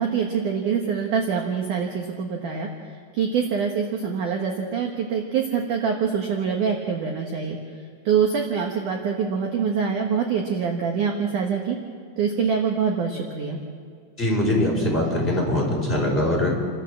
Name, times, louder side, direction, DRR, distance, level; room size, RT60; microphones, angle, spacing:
voice 1, 0.0-2.7 3.1-7.6 8.1-11.8 12.2-13.6, right 6 dB, 65° right, 2 dB, 2.1 m, -25 dB
voice 2, 14.2-16.5, left 1 dB, 10° left, -3 dB, 5.3 m, -22 dB
29.0 x 13.0 x 7.5 m, 2.3 s
omnidirectional pair, 5.4 m